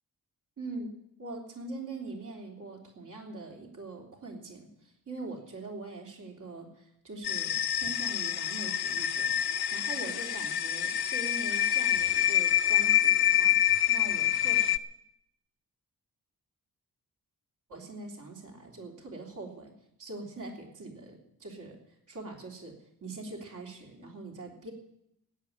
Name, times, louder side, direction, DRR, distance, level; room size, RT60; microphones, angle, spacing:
voice 1, 0.6-0.9 1.2-14.7 17.7-19.7 20.0-21.8 22.1-24.7, right 2 dB, 55° right, 0 dB, 3.3 m, -43 dB
sound 1, 7.2-14.8, left 11 dB, 75° left, 0.6 m, -26 dB
16.0 x 10.0 x 7.2 m, 0.78 s
wide cardioid pair, 160°, 37 cm